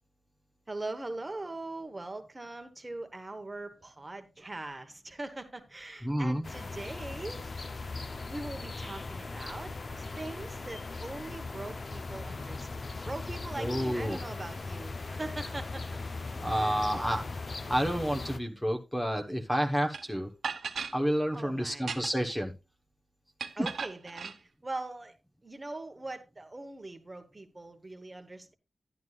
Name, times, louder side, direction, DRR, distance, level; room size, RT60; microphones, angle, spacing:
voice 1, 0.7-7.4 8.3-15.9 16.5-17.1 21.3-21.9 23.6-25.1 25.4-28.5, right 2 dB, 20° right, 1.1 m, -41 dB
voice 2, 6.0-6.5 13.6-14.2 16.4-20.3 20.9-22.5 23.6-23.7, equal, 5° left, 0.9 m, -30 dB
sound 1, 6.4-18.4, left 3 dB, 40° left, 0.7 m, -39 dB
sound 2, 19.9-20.0 20.4-21.0 21.7-22.3 23.4-24.4, right 5 dB, 85° right, 0.9 m, -36 dB
11.5 x 11.0 x 2.4 m
wide cardioid pair, 175°, 0 cm